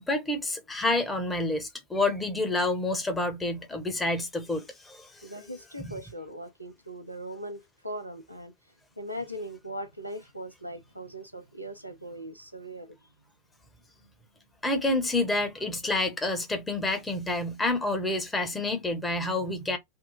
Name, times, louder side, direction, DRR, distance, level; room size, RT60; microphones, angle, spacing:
voice 1, 0.0-5.3 5.8-5.9 14.6-19.8, left 2 dB, 10° left, 1.2 m, -28 dB
voice 2, 5.2-8.5 9.0-13.0 14.0-14.1, right 1 dB, 90° right, 0.7 m, -40 dB
3.7 x 2.3 x 4.2 m
figure-of-eight pair, 90°, 0 cm